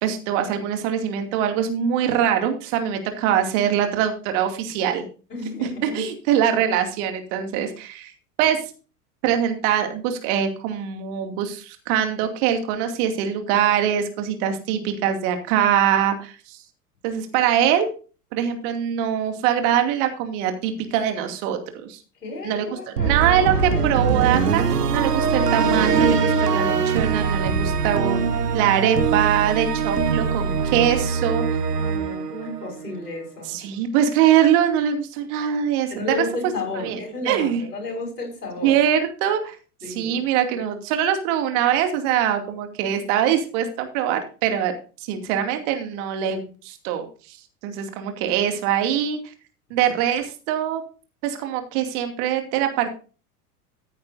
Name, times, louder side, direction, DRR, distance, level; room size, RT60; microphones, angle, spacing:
voice 1, 0.0-5.1 5.6-8.1 8.4-8.6 9.2-16.6 17.0-17.9 18.3-22.0 22.4-28.2 28.5-31.4 33.5-35.9 36.8-37.0 37.2-37.6 38.6-39.6 39.9-44.7 45.1-47.4 47.6-49.2 49.7-50.8 51.2-52.9, right 9 dB, 50° right, 6 dB, 2.6 m, -23 dB
voice 2, 5.3-6.0 22.2-23.9 31.7-33.6 35.9-38.8 39.8-40.2, left 2 dB, 80° left, 0 dB, 5.9 m, -32 dB
sound 1, 23.0-33.1, right 5 dB, 80° right, 1.2 m, -22 dB
14.5 x 9.2 x 2.7 m, 0.36 s
figure-of-eight pair, 85°, 46 cm